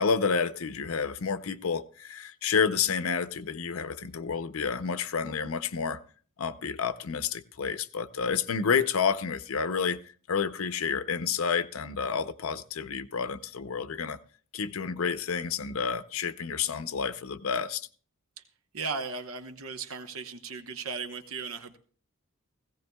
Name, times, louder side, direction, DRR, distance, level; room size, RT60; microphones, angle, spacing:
voice 1, 0.0-6.0 6.4-14.2 14.5-17.9, left 6 dB, 80° left, 0.6 m, -30 dB
voice 2, 18.7-21.8, right 4 dB, 85° right, 1.0 m, -36 dB
17.5 x 16.0 x 2.3 m
head